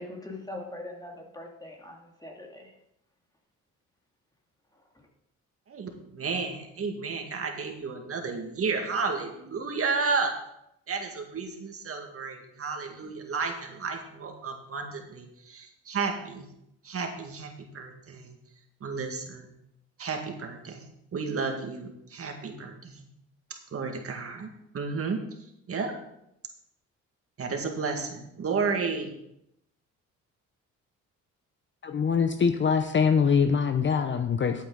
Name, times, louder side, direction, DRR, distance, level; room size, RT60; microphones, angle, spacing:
voice 1, 0.0-2.7, left 1 dB, 15° left, 0 dB, 2.5 m, -41 dB
voice 2, 5.7-10.3 10.9-16.5 16.8-18.4 18.8-19.5 20.0-23.1 23.7-24.5 24.7-25.2 25.7-25.9 27.4-29.1, right 4 dB, 50° right, 3 dB, 2.0 m, -32 dB
voice 3, 31.8-34.7, left 6 dB, 40° left, 9 dB, 0.7 m, -23 dB
11.5 x 8.4 x 4.0 m, 0.80 s
cardioid pair, 90°, 30 cm